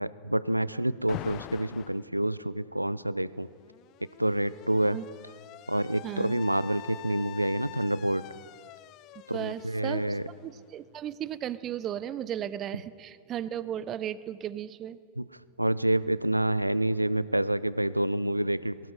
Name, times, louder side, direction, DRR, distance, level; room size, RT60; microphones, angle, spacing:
voice 1, 0.0-3.5 4.2-5.0 5.7-8.3 9.3-10.3 15.2-15.3 15.6-18.8, right 1 dB, 85° right, 18 dB, 0.3 m, -28 dB
Alarm, 1.1-2.1 3.3-11.0, left 15 dB, 40° left, 0.4 m, -46 dB
voice 2, 6.0-6.4 9.3-10.2 10.4-15.0, right 10 dB, 30° right, 17 dB, 0.5 m, -35 dB
23.0 x 16.5 x 3.3 m, 2.3 s
figure-of-eight pair, 90°, 0 cm